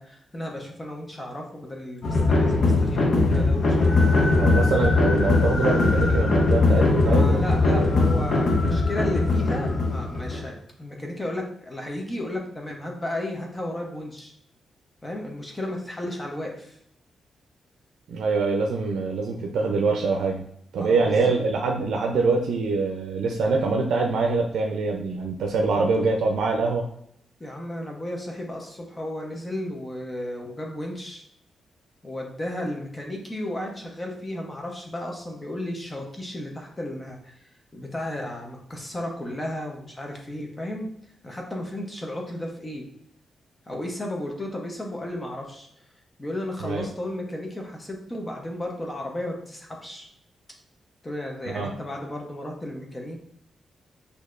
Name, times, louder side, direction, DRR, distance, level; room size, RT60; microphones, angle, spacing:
voice 1, 0.0-4.1 7.0-14.3 15.0-16.8 20.8-21.4 25.8-25.9 27.4-31.2 32.0-40.9 41.2-42.8 43.7-45.7 46.2-50.1 51.0-53.2, left 1 dB, 20° left, 0 dB, 0.8 m, -34 dB
sound 1, 2.0-10.5, left 3 dB, 50° left, 0.7 m, -20 dB
voice 2, 4.4-7.4 7.7-7.9 8.1-8.2 18.1-20.5 20.7-26.9 46.6-46.9 51.5-51.7, right 3 dB, 80° right, 1 dB, 0.5 m, -24 dB
6.4 x 2.7 x 2.4 m, 0.71 s
wide cardioid pair, 150°, 0 cm